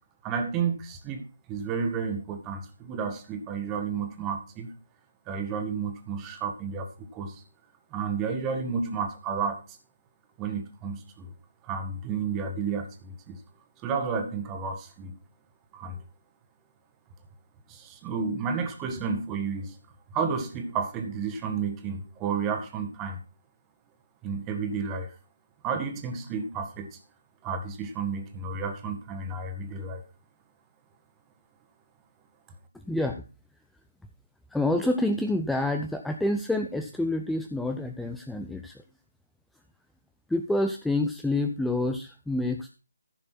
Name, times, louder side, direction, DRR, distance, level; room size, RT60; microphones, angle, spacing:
voice 1, 0.2-1.2 1.5-4.8 5.3-7.4 7.9-9.8 10.4-11.3 11.6-13.4 13.8-15.2 15.7-16.0 17.7-19.8 20.1-23.2 24.2-25.1 25.6-27.0 27.4-30.0, right 5 dB, 15° right, 6 dB, 1.7 m, -31 dB
voice 2, 32.7-33.2 34.5-38.8 40.3-42.7, left 2 dB, ahead, 5 dB, 0.6 m, -28 dB
15.0 x 6.6 x 4.5 m, 0.32 s
figure-of-eight pair, 150°, 0 cm